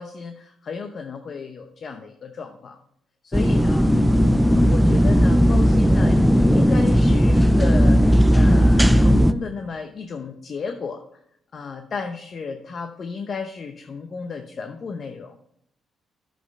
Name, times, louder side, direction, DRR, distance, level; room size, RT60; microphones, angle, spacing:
voice 1, 0.0-2.8 3.2-4.0 4.5-11.0 11.5-15.4, left 5 dB, 50° left, 6 dB, 0.9 m, -33 dB
sound 1, 3.3-9.3, equal, ahead, 0.5 m, -16 dB
9.7 x 7.9 x 5.4 m, 0.71 s
cardioid pair, 85°, 0 cm